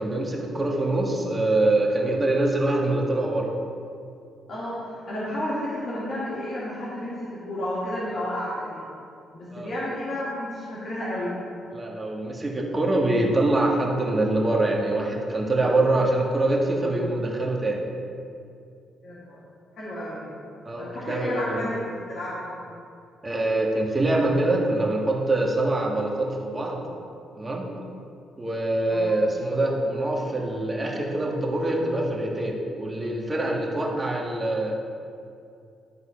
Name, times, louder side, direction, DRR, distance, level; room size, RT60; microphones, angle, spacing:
voice 1, 0.0-3.5 9.5-9.7 11.7-17.8 20.6-21.7 23.2-26.8 27.3-27.7 28.4-34.7, right 2 dB, 20° right, -1 dB, 1.6 m, -24 dB
voice 2, 4.5-9.0 9.3-11.4 19.0-19.4 19.8-20.3 20.8-22.5 28.9-29.1, left 1 dB, 50° left, -9 dB, 2.1 m, -31 dB
12.0 x 4.0 x 5.1 m, 2.5 s
cardioid pair, 90°, 0 cm